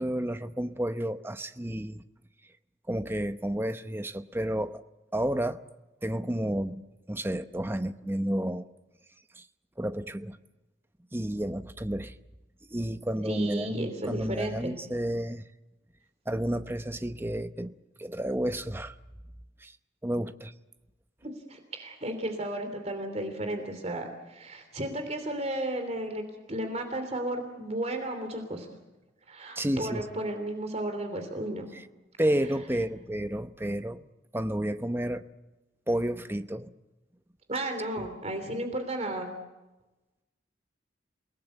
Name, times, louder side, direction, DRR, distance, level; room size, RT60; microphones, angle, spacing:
voice 1, 0.0-2.0 2.9-4.8 5.1-5.6 6.0-6.8 7.1-8.7 9.4-9.5 9.8-10.4 11.1-12.1 12.7-15.4 16.3-17.7 18.0-18.9 19.6-19.7 20.0-20.5 29.6-30.0 31.7-31.8 32.2-34.0 34.3-35.2 35.9-36.7, right 1 dB, 10° right, 10 dB, 0.8 m, -31 dB
voice 2, 13.3-14.8 21.2-26.2 26.5-28.7 29.3-31.7 37.5-39.3, right 1 dB, 35° right, 6 dB, 3.1 m, -34 dB
28.5 x 18.5 x 8.1 m, 1.1 s
head